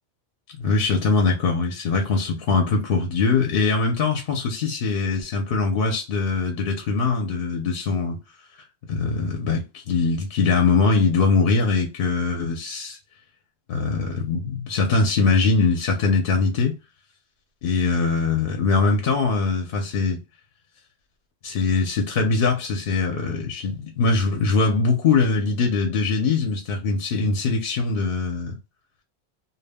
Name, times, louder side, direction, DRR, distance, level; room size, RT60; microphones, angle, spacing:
voice 1, 0.6-8.2 8.9-13.0 13.7-16.8 17.6-20.2 21.4-28.5, left 4 dB, 65° left, 0.8 m, -22 dB
2.2 x 2.0 x 3.3 m
omnidirectional pair, 1.1 m